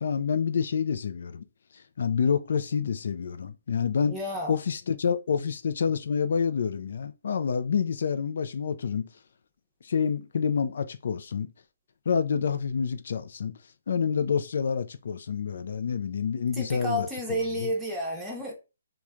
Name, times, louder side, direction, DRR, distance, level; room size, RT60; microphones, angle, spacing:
voice 1, 0.0-1.4 1.7-4.2 4.5-9.1 9.8-11.5 12.1-13.6 13.9-17.7, left 6 dB, 65° left, 0.4 m, -28 dB
voice 2, 4.1-4.6 16.6-18.5, equal, 5° right, 0.8 m, -31 dB
3.0 x 2.2 x 2.4 m
hypercardioid pair, 155°, 0 cm